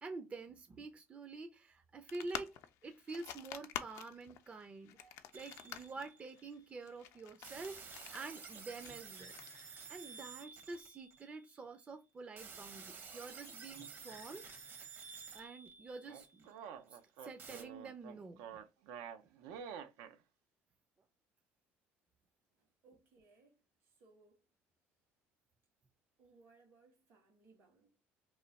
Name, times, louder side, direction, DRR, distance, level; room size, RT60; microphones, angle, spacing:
voice 1, 0.0-2.6 2.8-14.5 15.3-16.5 16.9-18.6, right 3 dB, 25° right, 0.4 m, -48 dB
sound 1, 2.1-10.3, left 11 dB, 75° left, 0.4 m, -49 dB
sound 2, 5.3-6.5 7.4-11.5 12.4-16.5 17.4-17.6, right 5 dB, 45° right, 0.8 m, -52 dB
sound 3, 16.1-20.1, right 8 dB, 90° right, 0.4 m, -49 dB
voice 2, 22.6-24.4 26.2-27.9, right 3 dB, 70° right, 1.6 m, -66 dB
3.1 x 2.2 x 3.9 m
cardioid pair, 105°, 5 cm